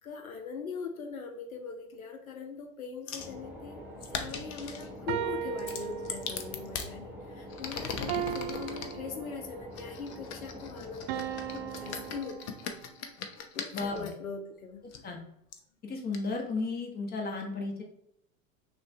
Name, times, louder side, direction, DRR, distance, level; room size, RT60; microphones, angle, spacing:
voice 1, 0.0-3.8 4.1-12.4 13.5-14.9, left 5 dB, 85° left, 5 dB, 0.7 m, -41 dB
sound 1, 3.1-3.3 4.0-4.9 5.6-6.9 7.5-8.9 9.7-14.1 14.9-15.0 15.5-15.6 16.1-16.2, left 6 dB, 40° left, 0.6 m, -39 dB
sound 2, 3.2-12.2, equal, 5° right, 0.7 m, -46 dB
sound 3, 5.1-6.7 8.1-9.8 11.1-13.0, right 10 dB, 45° right, 0.5 m, -37 dB
voice 2, 13.7-14.1 15.0-15.2 15.8-17.8, left 3 dB, 25° left, 1 dB, 1.1 m, -34 dB
6.1 x 2.4 x 2.7 m, 0.74 s
figure-of-eight pair, 85°, 41 cm